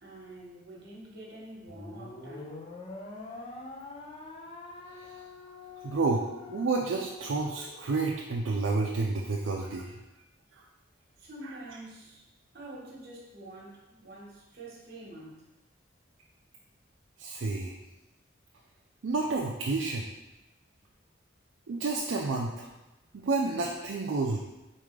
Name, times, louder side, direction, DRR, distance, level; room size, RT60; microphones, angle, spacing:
voice 1, 0.0-2.7 11.2-12.2 12.5-15.5, right 1 dB, 55° right, -3 dB, 1.2 m, -47 dB
sound 1, 1.7-8.2, left 3 dB, 30° left, 0.5 m, -45 dB
voice 2, 5.8-10.0 17.2-17.8 19.0-20.1 21.7-22.7 23.1-24.4, right 3 dB, 75° right, -1 dB, 0.4 m, -30 dB
4.4 x 3.7 x 3.2 m, 1.0 s
head